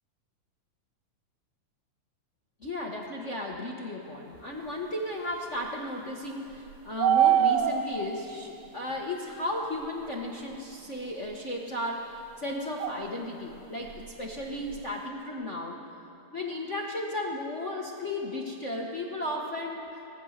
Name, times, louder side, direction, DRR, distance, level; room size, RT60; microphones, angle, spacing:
voice 1, 2.6-15.8 16.3-19.9, left 1 dB, 65° left, -1 dB, 0.7 m, -35 dB
sound 1, 6.5-8.1 10.5-10.6 12.8-13.2 13.5-13.6 13.9-14.9, right 10 dB, 75° right, 1.5 m, -24 dB
25.0 x 18.0 x 6.6 m, 2.8 s
omnidirectional pair, 3.6 m